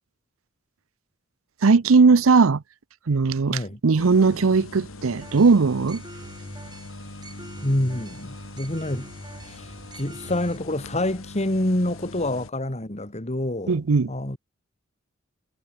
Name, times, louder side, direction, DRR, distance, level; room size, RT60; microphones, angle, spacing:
voice 1, 1.6-2.6 3.1-6.0 13.7-14.1, right 4 dB, 85° right, 0.6 m, -18 dB
voice 2, 3.5-3.8 7.6-9.1 9.4-13.8 14.1-14.4, left 1 dB, 35° left, 2.5 m, -27 dB
sound 1, 4.0-12.5, left 2 dB, 85° left, 2.3 m, -42 dB
sound 2, 4.5-11.2, equal, ahead, 5.1 m, -56 dB
sound 3, 5.2-10.6, right 2 dB, 20° right, 3.7 m, -44 dB
head